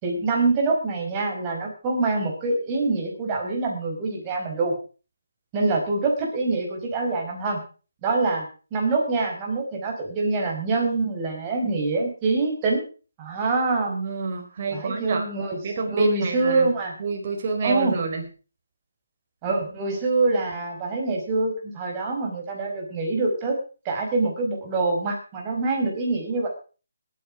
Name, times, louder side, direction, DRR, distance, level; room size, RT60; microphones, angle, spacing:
voice 1, 0.0-4.7 5.5-7.6 8.0-8.5 8.7-12.8 13.2-13.9 14.7-15.6 15.9-16.9 17.6-17.9 19.4-23.6 23.9-26.5, right 3 dB, 20° right, 0 dB, 5.0 m, -25 dB
voice 2, 13.9-15.2 15.6-16.7 17.0-18.2, right 4 dB, 40° right, 3 dB, 4.4 m, -28 dB
19.5 x 9.6 x 4.9 m, 0.37 s
figure-of-eight pair, 160°, 0 cm